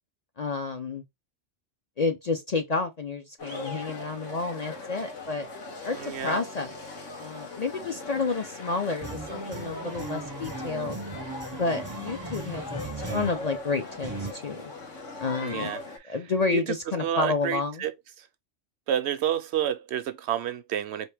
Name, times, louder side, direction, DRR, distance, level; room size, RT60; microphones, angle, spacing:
voice 1, 0.4-1.0 2.0-5.5 5.8-6.7 7.2-11.0 11.5-12.8 13.1-14.7 15.2-15.7 16.1-17.8, left 4 dB, 45° left, 0.5 m, -30 dB
sound 1, 3.4-16.0, left 3 dB, 85° left, 2.1 m, -40 dB
voice 2, 5.9-6.4 15.4-16.2 16.5-16.6 17.0-17.9 18.9-21.1, right 10 dB, 70° right, 0.8 m, -29 dB
sound 2, 9.0-14.3, right 3 dB, 30° right, 0.4 m, -38 dB
4.4 x 3.3 x 3.4 m
omnidirectional pair, 1.2 m